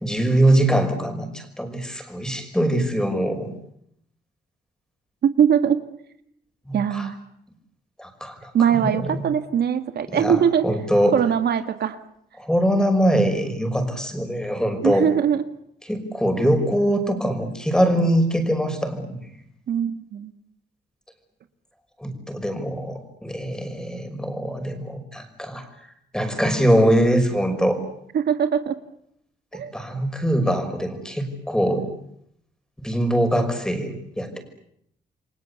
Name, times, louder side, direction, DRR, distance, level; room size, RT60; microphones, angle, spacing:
voice 1, 0.0-3.5 6.7-7.1 8.0-9.3 10.1-11.2 12.4-15.1 15.9-19.2 22.0-25.7 26.1-27.8 29.5-31.9 32.8-34.4, right 1 dB, 5° left, 7 dB, 5.6 m, -23 dB
voice 2, 5.2-5.8 6.7-7.2 8.5-10.7 11.1-12.0 14.8-15.5 19.7-20.3 28.1-28.8 29.5-29.7, right 8 dB, 65° right, 9 dB, 1.8 m, -21 dB
29.5 x 23.5 x 8.2 m, 0.74 s
cardioid pair, 135°, 18 cm